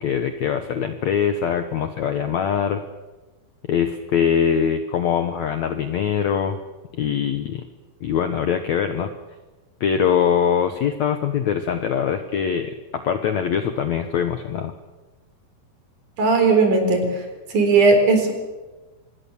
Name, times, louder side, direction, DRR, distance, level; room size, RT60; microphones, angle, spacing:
voice 1, 0.0-2.8 3.7-6.6 7.0-7.6 8.0-9.1 9.8-14.7, left 8 dB, 70° left, 8 dB, 1.8 m, -22 dB
voice 2, 16.2-17.1 17.5-18.3, right 3 dB, 55° right, 5 dB, 5.2 m, -16 dB
25.5 x 20.5 x 7.1 m, 1.2 s
omnidirectional pair, 4.5 m